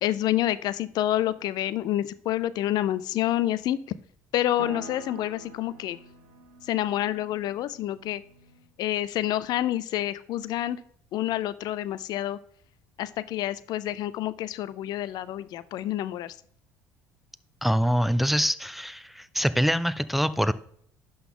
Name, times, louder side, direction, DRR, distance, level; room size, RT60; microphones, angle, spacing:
voice 1, 0.0-3.8 4.3-6.0 6.6-8.2 8.8-10.8 11.1-12.4 13.0-16.4, left 13 dB, 60° left, 17 dB, 0.4 m, -28 dB
sound 1, 4.6-8.7, right 4 dB, 75° right, 1.2 m, -46 dB
voice 2, 17.6-20.5, equal, ahead, 14 dB, 0.4 m, -24 dB
11.0 x 3.9 x 3.7 m, 0.63 s
hypercardioid pair, 65°, 8 cm